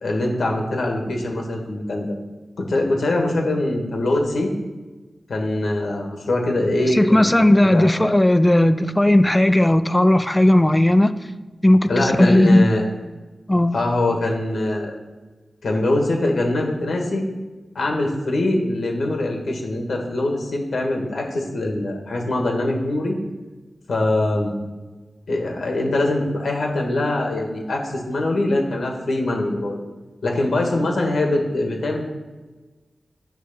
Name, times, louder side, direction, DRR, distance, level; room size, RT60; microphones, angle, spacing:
voice 1, 0.0-2.2 2.6-4.5 5.3-7.9 11.9-12.8 13.7-15.0 15.6-17.3 17.8-23.2 23.9-24.6 25.3-29.8 30.2-32.1, left 2 dB, 85° left, 1 dB, 1.6 m, -23 dB
voice 2, 6.9-11.1 11.6-12.6 13.5-13.7, left 1 dB, 15° left, 12 dB, 0.4 m, -16 dB
9.3 x 3.3 x 6.7 m, 1.2 s
wide cardioid pair, 95°, 0 cm